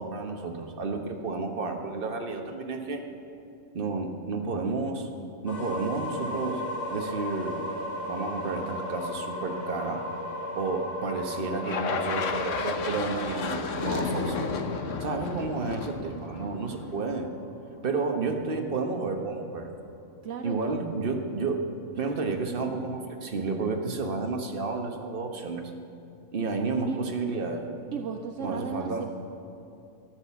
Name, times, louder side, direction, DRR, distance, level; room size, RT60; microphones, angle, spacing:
voice 1, 0.0-3.0 3.7-5.1 5.4-6.6 6.9-7.6 8.1-10.0 10.5-14.5 15.0-17.3 17.8-19.7 20.4-21.6 22.0-25.7 26.3-27.7 28.4-29.0, right 3 dB, 45° right, 4 dB, 1.3 m, -31 dB
sound 1, 5.4-17.2, left 1 dB, 15° left, 3.4 m, -37 dB
sound 2, 11.6-17.0, left 4 dB, 70° left, 1.3 m, -32 dB
voice 2, 20.2-20.8 26.9-27.1 27.9-29.1, right 6 dB, 70° right, 6 dB, 1.0 m, -35 dB
13.0 x 11.0 x 7.0 m, 2.6 s
omnidirectional pair, 1.4 m